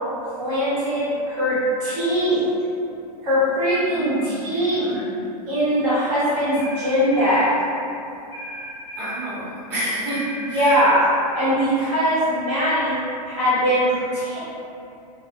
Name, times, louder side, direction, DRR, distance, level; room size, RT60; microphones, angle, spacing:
voice 1, 0.2-2.4 3.2-4.9 5.5-7.5 10.4-11.0 11.3-13.0 13.3-14.4, equal, 35° right, -13 dB, 1.2 m, -21 dB
voice 2, 3.9-5.2 9.0-10.7, right 1 dB, 75° right, -10 dB, 1.0 m, -30 dB
sound 1, 6.5-7.5 8.3-9.3 10.1-11.1, right 1 dB, 25° left, 1.0 m, -35 dB
2.2 x 2.2 x 2.5 m, 2.7 s
supercardioid pair, 160°, 20 cm